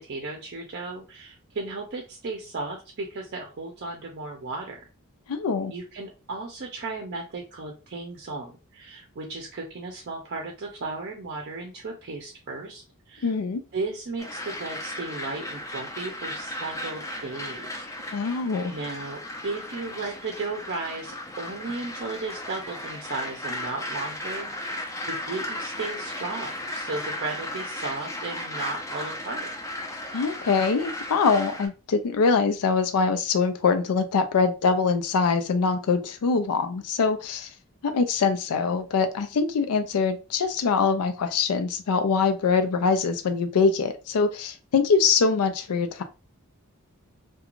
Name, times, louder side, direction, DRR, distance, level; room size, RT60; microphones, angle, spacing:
voice 1, 0.0-4.8 5.7-13.3 13.7-17.9 18.2-29.5, right 3 dB, 50° right, 2 dB, 0.5 m, -35 dB
voice 2, 5.3-5.7 13.2-13.6 18.1-18.7 30.1-37.5 37.8-46.0, left 5 dB, 80° left, 8 dB, 0.4 m, -23 dB
sound 1, 14.2-31.7, left 1 dB, 15° left, 0.4 m, -35 dB
2.4 x 2.2 x 2.9 m, 0.30 s
head